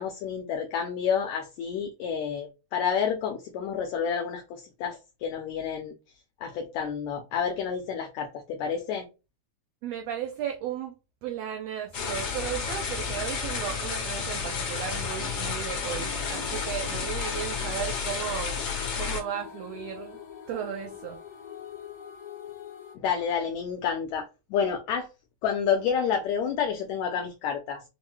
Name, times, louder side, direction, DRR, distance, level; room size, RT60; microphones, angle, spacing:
voice 1, 0.0-5.9 6.4-9.1 23.0-24.2 24.5-25.1 25.4-27.8, left 7 dB, 75° left, 1.7 m, -29 dB
voice 2, 9.8-10.9 11.2-18.6 19.0-20.2 20.5-21.2, right 9 dB, 90° right, 1.4 m, -35 dB
sound 1, 11.9-19.2, left 5 dB, 55° left, 1.5 m, -31 dB
sound 2, 15.9-22.9, left 7 dB, 40° left, 1.1 m, -44 dB
5.8 x 2.1 x 3.0 m
omnidirectional pair, 3.5 m